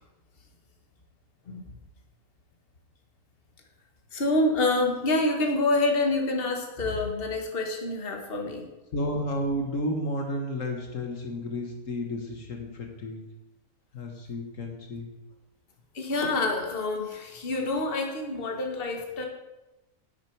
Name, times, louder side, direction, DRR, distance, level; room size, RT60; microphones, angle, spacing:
voice 1, 4.1-8.7 15.9-19.3, left 2 dB, 45° left, 2 dB, 1.6 m, -27 dB
voice 2, 8.9-13.2 13.9-15.1, equal, 70° left, 3 dB, 1.7 m, -32 dB
11.0 x 8.6 x 4.6 m, 1.0 s
omnidirectional pair, 1.4 m